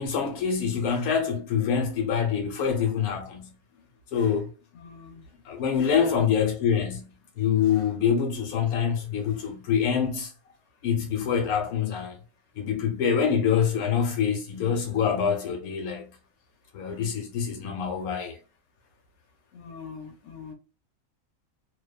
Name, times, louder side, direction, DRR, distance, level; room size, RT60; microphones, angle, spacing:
voice 1, 0.0-3.5 4.1-4.5 5.4-10.3 10.8-12.2 12.6-16.1 16.7-18.4, left 7 dB, 80° left, 1.1 m, -25 dB
voice 2, 4.7-5.3 5.8-6.2 19.5-20.5, left 4 dB, 55° left, 1.0 m, -41 dB
2.6 x 2.2 x 2.2 m
omnidirectional pair, 1.5 m